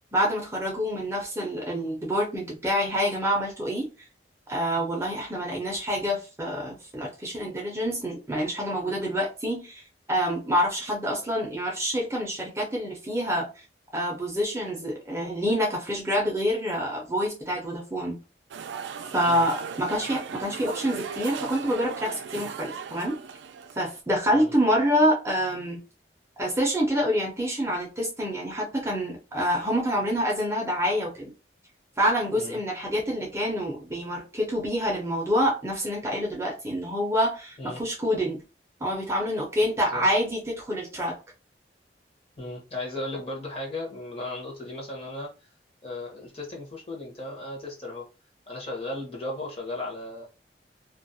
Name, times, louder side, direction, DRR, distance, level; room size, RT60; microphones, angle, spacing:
voice 1, 0.1-3.9 4.5-9.8 10.1-13.5 13.9-18.2 19.1-23.2 23.8-25.8 26.4-31.3 32.0-38.4 38.8-41.1, equal, 15° right, -1 dB, 0.5 m, -27 dB
sound 1, 18.5-24.0, right 6 dB, 80° right, 0.3 m, -37 dB
voice 2, 39.6-40.1 42.4-45.3 45.8-48.1 48.5-50.3, left 2 dB, 35° left, -2 dB, 0.8 m, -36 dB
2.3 x 2.0 x 2.6 m, 0.31 s
head